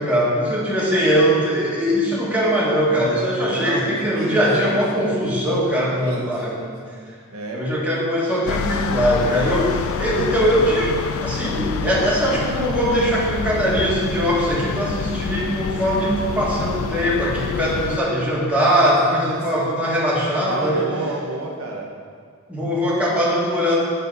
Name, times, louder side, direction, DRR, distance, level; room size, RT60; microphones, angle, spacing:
voice 1, 0.0-6.5 7.5-20.9 22.5-23.8, equal, 5° right, -7 dB, 1.5 m, -21 dB
voice 2, 3.4-5.2 6.0-7.0 7.3-7.6 19.1-19.8 20.5-21.9, right 2 dB, 70° right, -1 dB, 1.0 m, -32 dB
sound 1, 8.5-18.0, left 6 dB, 65° left, 0.3 m, -27 dB
9.0 x 4.3 x 5.2 m, 2.1 s
head